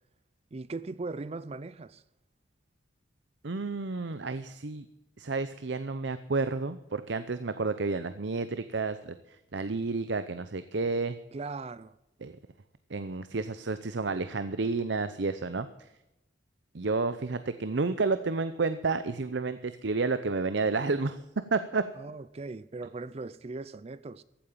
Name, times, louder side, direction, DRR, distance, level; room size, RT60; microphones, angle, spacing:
voice 1, 0.5-2.0 11.3-11.9 22.0-24.2, right 3 dB, 30° right, 0.4 m, -39 dB
voice 2, 3.4-4.9 5.2-11.2 12.2-12.4 12.9-15.9 16.7-21.2 21.5-21.8, right 3 dB, 65° right, 0.7 m, -31 dB
15.0 x 8.9 x 7.3 m
head